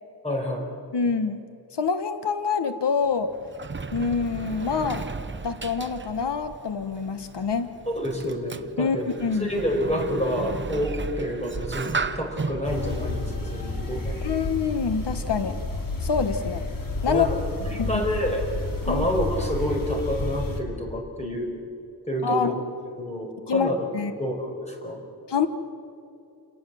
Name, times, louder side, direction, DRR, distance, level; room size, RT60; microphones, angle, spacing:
voice 1, 0.2-0.7 7.9-9.1 9.4-14.3 17.1-17.4 17.6-18.4 18.8-21.5 22.1-22.6 23.0-23.9 24.2-25.0, equal, 15° left, 1 dB, 4.9 m, -28 dB
voice 2, 0.9-1.4 1.7-3.3 3.9-5.0 5.4-7.7 8.8-9.5 14.2-15.5 16.0-16.6 17.0-17.3 17.8-17.9 18.9-19.0 22.2-22.6 23.5-24.1 25.3-25.5, left 5 dB, 90° left, 9 dB, 1.2 m, -26 dB
Sliding door, 3.0-14.5, right 4 dB, 30° right, 0.8 m, -35 dB
sound 1, 12.6-20.6, left 2 dB, 55° left, 2.9 m, -31 dB
29.0 x 18.5 x 7.7 m, 2.6 s
wide cardioid pair, 120°, 40 cm